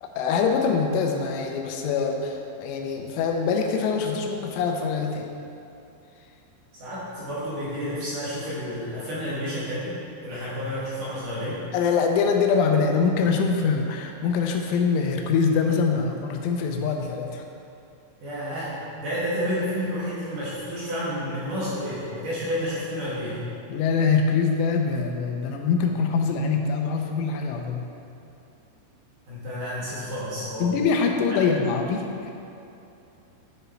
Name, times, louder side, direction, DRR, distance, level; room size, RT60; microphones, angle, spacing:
voice 1, 0.0-5.3 11.7-17.4 23.7-27.9 30.6-32.3, left 5 dB, 85° left, 3 dB, 3.2 m, -24 dB
voice 2, 6.7-11.6 18.2-23.4 29.3-30.7 31.3-31.4, equal, 55° right, -9 dB, 2.9 m, -30 dB
11.0 x 7.0 x 4.5 m, 2.8 s
omnidirectional pair, 5.6 m